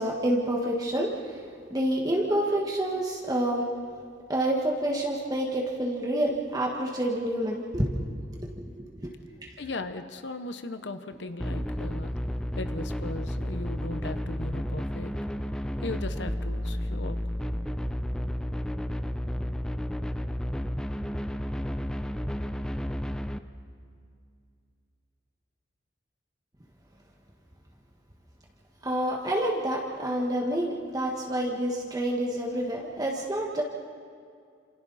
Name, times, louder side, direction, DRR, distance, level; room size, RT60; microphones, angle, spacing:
voice 1, 0.0-1.4 1.7-3.6 4.3-8.7 9.0-9.1 9.4-9.5 11.5-11.6 28.8-33.6, right 1 dB, 20° right, -2 dB, 1.6 m, -28 dB
voice 2, 9.6-12.1 12.6-15.1 15.8-17.2, left 2 dB, 65° left, 9 dB, 0.9 m, -37 dB
sound 1, 11.4-23.4, equal, 5° left, 0.6 m, -32 dB
28.5 x 27.5 x 4.2 m, 2.4 s
head